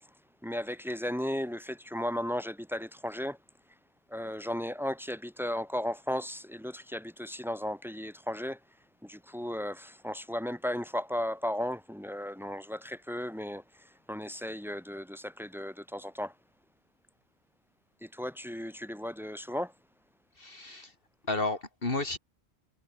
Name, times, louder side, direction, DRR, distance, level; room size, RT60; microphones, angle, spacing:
voice 1, 0.4-3.4 4.1-8.6 9.0-16.3 18.0-19.7, left 1 dB, ahead, 3.7 m, -35 dB
voice 2, 20.4-20.9 21.3-22.2, left 2 dB, 60° left, 3.0 m, -32 dB
omnidirectional pair, 1.1 m